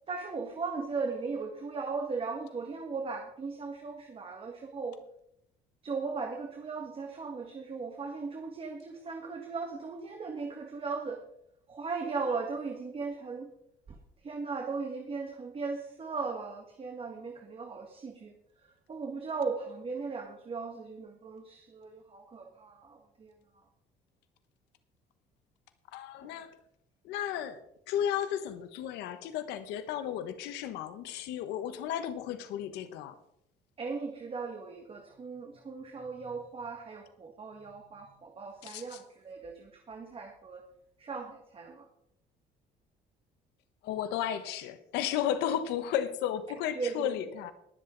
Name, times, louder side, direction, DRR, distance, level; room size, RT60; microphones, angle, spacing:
voice 1, 0.1-5.0 5.8-11.2 11.7-13.5 13.9-18.3 18.6-23.6 33.8-40.6 41.0-41.9 46.7-47.1, right 4 dB, 35° right, 3 dB, 1.8 m, -37 dB
voice 2, 25.9-26.5 27.0-27.6 27.9-33.2 38.6-38.8 43.8-47.5, left 10 dB, 90° left, 10 dB, 1.1 m, -33 dB
21.0 x 7.8 x 3.9 m, 0.76 s
cardioid pair, 110°, 17 cm